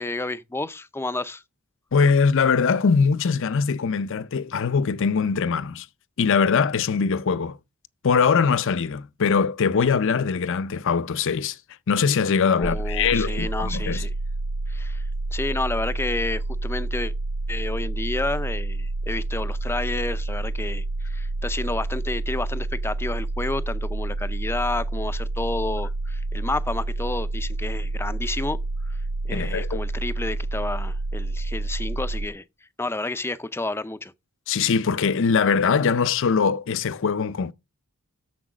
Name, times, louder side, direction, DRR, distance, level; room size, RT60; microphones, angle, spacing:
voice 1, 0.0-1.4 12.6-14.1 14.7-15.0 15.3-17.1 17.5-28.6 28.9-29.0 29.2-32.4 32.8-34.1, left 2 dB, 10° left, 0.4 m, -30 dB
voice 2, 1.9-5.9 6.2-7.6 8.0-11.6 11.9-14.0 29.3-29.8 34.5-37.5, left 5 dB, 60° left, 0.5 m, -22 dB
sound 1, 12.6-32.3, right 2 dB, 55° right, 0.5 m, -29 dB
7.2 x 6.1 x 5.9 m
head